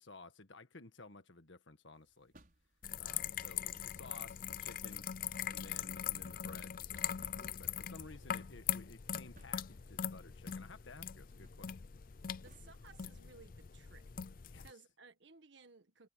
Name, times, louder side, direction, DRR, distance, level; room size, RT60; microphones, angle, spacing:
voice 1, 0.0-2.3 3.0-5.1 5.4-7.2 7.6-11.9 14.5-14.6, left 3 dB, 70° left, 1.6 m, -55 dB
sound 1, 1.9-13.4, right 1 dB, 45° right, 6.3 m, -68 dB
sound 2, 2.8-14.7, left 9 dB, 45° left, 0.5 m, -42 dB
voice 2, 12.4-14.1 14.4-16.1, right 4 dB, 65° right, 1.8 m, -60 dB
head